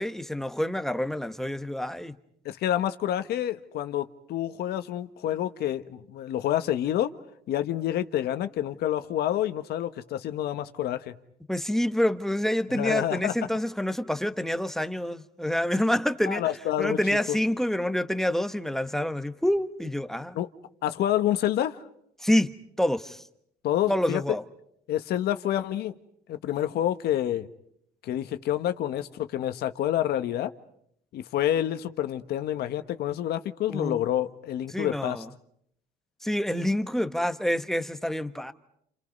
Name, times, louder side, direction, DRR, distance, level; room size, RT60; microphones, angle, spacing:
voice 1, 0.0-2.1 11.5-16.4 16.8-20.4 22.2-22.5 22.8-23.2 23.9-24.4 33.7-34.0 34.7-35.3 36.2-38.5, left 1 dB, ahead, 1.2 m, -27 dB
voice 2, 2.4-7.1 7.5-11.1 12.7-13.3 16.3-17.0 17.3-17.4 20.3-20.5 20.8-21.8 23.6-24.2 24.9-26.0 26.3-27.5 28.0-30.5 31.1-35.2, left 12 dB, 70° left, 1.3 m, -28 dB
30.0 x 28.5 x 5.4 m
cardioid pair, 110°, 17 cm